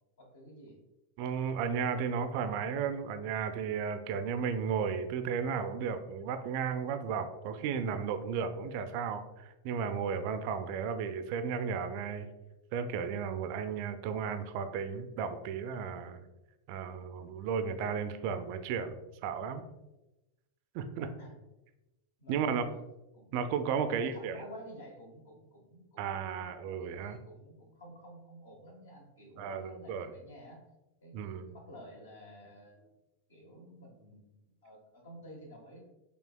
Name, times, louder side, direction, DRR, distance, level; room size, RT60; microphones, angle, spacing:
voice 1, 0.2-0.8 21.2-21.4 22.2-22.8 23.1-23.4 23.8-26.5 26.8-30.6 31.0-32.9 33.3-35.8, equal, 65° left, 2 dB, 1.0 m, -51 dB
voice 2, 1.2-12.3 12.7-16.2 16.7-19.6 20.7-21.1 22.3-22.6 23.3-24.4 26.0-27.2 29.4-30.1 31.1-31.5, right 6 dB, 45° right, 9 dB, 0.4 m, -34 dB
5.9 x 3.3 x 2.2 m, 0.99 s
figure-of-eight pair, 90°, 0 cm